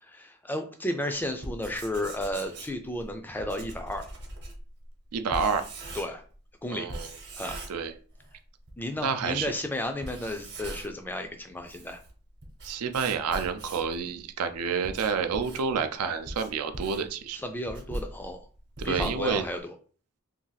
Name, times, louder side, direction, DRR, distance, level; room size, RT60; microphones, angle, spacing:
voice 1, 0.0-4.1 5.9-6.2 6.6-6.9 7.3-7.6 8.8-12.0 17.3-18.4 18.8-19.8, left 1 dB, 10° left, 6 dB, 0.3 m, -33 dB
Writing, 1.3-6.4 6.9-8.3 8.7-8.8 9.4-9.5 9.9-11.1 11.5-14.0 14.6-19.6, right 1 dB, 50° right, 0.9 m, -40 dB
voice 2, 5.1-5.6 6.7-7.1 7.7-7.9 9.0-9.5 12.6-17.4 18.8-19.4, right 6 dB, 80° right, 9 dB, 0.4 m, -29 dB
2.6 x 2.4 x 3.9 m, 0.41 s
head